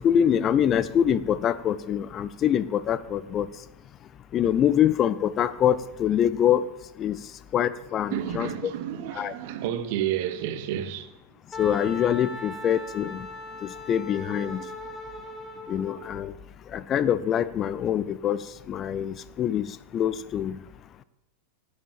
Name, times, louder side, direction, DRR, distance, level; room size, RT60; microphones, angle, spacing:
voice 1, 0.0-3.5 4.3-6.7 7.0-7.2 7.5-8.7 9.1-9.3 11.6-13.3 13.6-14.7 15.7-16.3 16.7-20.6, left 9 dB, 30° left, 0.5 m, -25 dB
voice 2, 8.1-11.1, right 10 dB, 50° right, 1.0 m, -30 dB
Wind instrument woodwind instrument, 11.5-16.2, left 1 dB, 10° left, 2.0 m, -39 dB
12.5 x 7.9 x 7.2 m
figure-of-eight pair, 90°, 0 cm